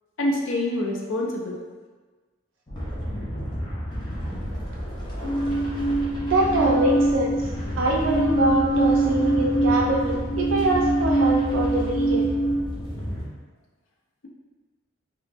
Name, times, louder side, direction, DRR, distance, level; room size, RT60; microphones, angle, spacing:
voice 1, 0.2-1.6, left 1 dB, 70° left, -1 dB, 0.5 m, -26 dB
sound 1, 2.7-13.3, equal, 20° left, 0.6 m, -32 dB
sound 2, 5.2-7.5 7.9-12.6, right 2 dB, 5° left, 1.0 m, -24 dB
voice 2, 6.3-7.4 7.8-12.3, right 2 dB, 65° right, -2 dB, 0.3 m, -24 dB
2.8 x 2.0 x 3.3 m, 1.3 s
head